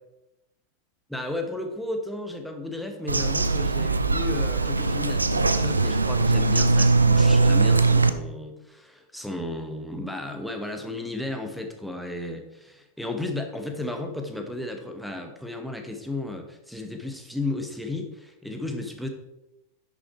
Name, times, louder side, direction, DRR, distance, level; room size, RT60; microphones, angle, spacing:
voice 1, 1.1-19.1, left 2 dB, ahead, 4 dB, 1.4 m, -34 dB
Bird vocalization bird call bird song, 3.1-8.1, right 3 dB, 80° right, 0.5 m, -21 dB
10.5 x 6.4 x 4.5 m, 0.93 s
figure-of-eight pair, 90°, 0 cm